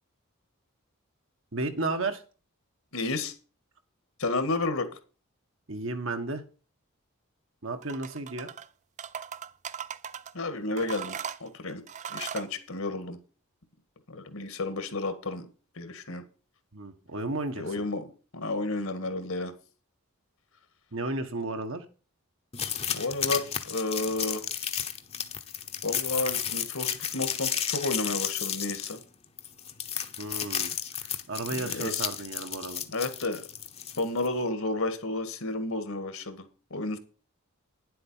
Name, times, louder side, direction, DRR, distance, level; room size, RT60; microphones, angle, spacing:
voice 1, 1.5-2.2 5.7-6.4 7.6-8.5 16.7-17.7 20.9-21.8 30.2-30.7 31.0-32.8, right 2 dB, 60° right, 7 dB, 1.5 m, -33 dB
voice 2, 2.9-3.3 4.2-4.9 10.3-11.8 12.1-13.2 14.1-15.5 15.8-16.2 17.6-18.1 18.3-19.5 22.9-24.4 25.8-29.0 31.6-32.0 32.9-33.4 34.0-37.0, left 2 dB, 70° left, 9 dB, 2.0 m, -31 dB
sound 1, 7.8-8.7 9.0-10.3 10.8-12.5, right 8 dB, 35° right, 0.4 m, -38 dB
sound 2, 22.5-34.3, left 8 dB, 30° left, 1.0 m, -33 dB
10.5 x 7.8 x 5.7 m, 0.36 s
head